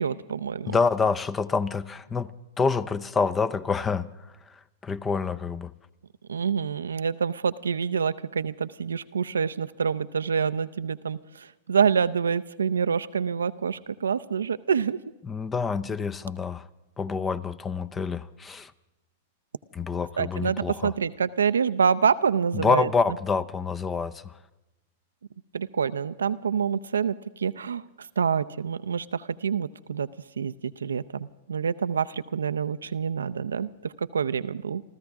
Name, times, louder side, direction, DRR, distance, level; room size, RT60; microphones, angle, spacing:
voice 1, 0.0-0.8 6.3-15.0 20.2-22.9 25.5-27.8 28.2-30.1 30.4-34.8, right 6 dB, 85° right, 0.5 m, -27 dB
voice 2, 0.7-2.3 2.6-4.1 4.8-5.7 15.2-16.6 17.0-18.7 19.7-20.9 22.5-24.3, left 5 dB, 20° left, 0.7 m, -27 dB
28.0 x 14.0 x 3.5 m
hypercardioid pair, 110°, 0 cm